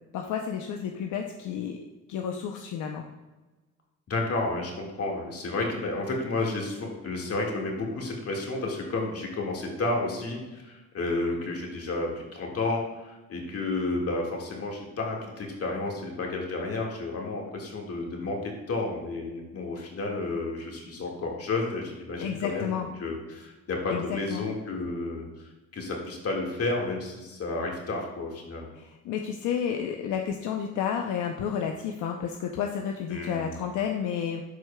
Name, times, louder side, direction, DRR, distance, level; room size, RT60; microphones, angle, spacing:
voice 1, 0.1-1.8 2.1-3.1 22.2-22.9 23.9-24.4 28.7-34.4, left 8 dB, 80° left, 3 dB, 0.6 m, -31 dB
voice 2, 4.1-22.7 23.0-28.7 33.1-33.6, left 2 dB, 50° left, 0 dB, 1.8 m, -31 dB
12.0 x 4.6 x 2.2 m, 1.2 s
cardioid pair, 90°, 30 cm